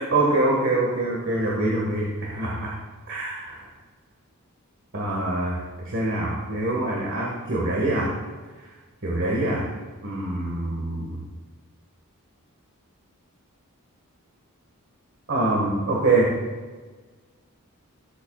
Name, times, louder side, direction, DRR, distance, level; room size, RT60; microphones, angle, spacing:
voice 1, 0.0-2.7 3.1-3.6 4.9-5.6 5.9-8.1 9.0-9.7 10.0-11.2 15.3-16.3, right 2 dB, 60° right, -4 dB, 1.8 m, -24 dB
15.0 x 7.7 x 2.4 m, 1.3 s
head